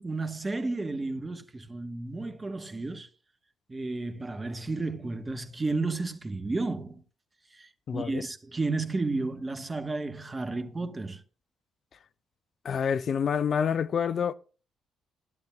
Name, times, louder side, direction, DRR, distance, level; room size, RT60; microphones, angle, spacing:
voice 1, 0.0-3.1 3.7-7.0 7.5-11.2, right 3 dB, 25° right, 1.2 m, -32 dB
voice 2, 7.9-8.2 12.6-14.3, left 7 dB, 50° left, 0.4 m, -27 dB
15.5 x 11.5 x 2.3 m
figure-of-eight pair, 45°, 0 cm